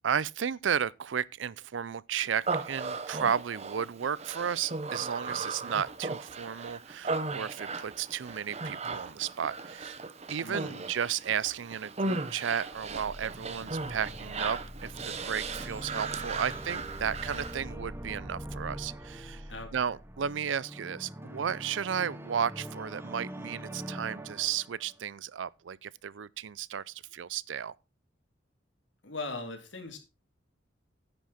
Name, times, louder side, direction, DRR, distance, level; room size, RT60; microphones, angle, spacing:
voice 1, 0.0-9.9 10.3-19.4 19.7-27.7, right 8 dB, 80° right, 0.5 m, -33 dB
Human voice, 2.4-17.6, right 3 dB, 35° right, 0.9 m, -37 dB
voice 2, 10.4-10.8 19.5-19.8 29.0-30.0, left 3 dB, 80° left, 2.7 m, -39 dB
sound 1, 12.6-20.4, equal, 5° left, 1.2 m, -47 dB
sound 2, 14.9-25.0, right 1 dB, 15° right, 1.1 m, -44 dB
9.9 x 9.3 x 4.2 m
head